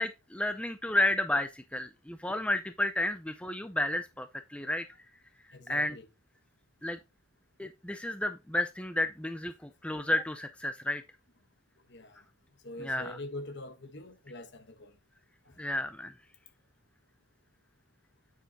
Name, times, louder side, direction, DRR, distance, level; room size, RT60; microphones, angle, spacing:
voice 1, 0.0-4.9 5.7-6.0 6.8-7.0 7.6-11.0 12.8-13.2 15.6-16.1, left 1 dB, 5° left, 0.4 m, -31 dB
voice 2, 5.5-6.1 11.9-12.2 12.6-15.0 15.5-15.6, left 1 dB, 50° left, 1.2 m, -44 dB
9.3 x 6.7 x 2.9 m
head